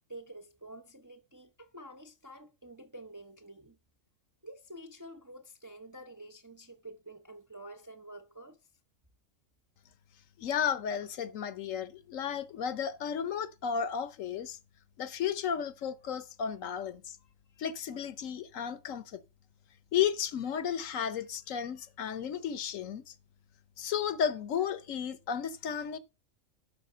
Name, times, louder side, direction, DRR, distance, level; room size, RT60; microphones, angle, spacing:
voice 1, 0.1-3.8 4.4-8.6, right 1 dB, 25° right, 0.4 m, -49 dB
voice 2, 10.4-14.6 15.0-17.2 17.6-19.2 19.9-23.1 23.8-26.0, left 8 dB, 75° left, 1.2 m, -33 dB
11.5 x 4.6 x 5.5 m
omnidirectional pair, 1.4 m